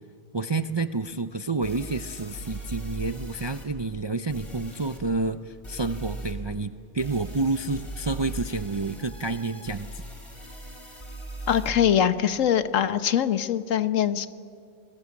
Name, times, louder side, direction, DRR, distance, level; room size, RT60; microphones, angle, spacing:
voice 1, 0.3-10.0, right 3 dB, 40° right, 10 dB, 0.4 m, -29 dB
sound 1, 1.0-1.1 1.6-3.7 4.3-5.0 5.6-6.3 7.0-11.7, right 1 dB, 20° left, 3.8 m, -39 dB
voice 2, 11.5-14.3, left 9 dB, 80° left, 12 dB, 1.3 m, -23 dB
25.5 x 21.5 x 8.5 m, 2.3 s
omnidirectional pair, 1.3 m